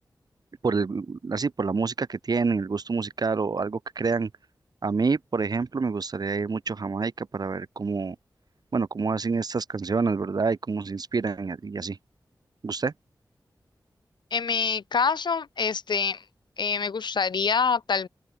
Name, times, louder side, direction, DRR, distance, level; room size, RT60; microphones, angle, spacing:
voice 1, 0.6-4.3 4.8-8.2 8.7-12.0 12.6-12.9, right 4 dB, 60° right, 6.0 m, -27 dB
voice 2, 14.3-16.2 16.6-18.1, left 5 dB, 85° left, 6.3 m, -26 dB
open air
wide cardioid pair, 100°, 7 cm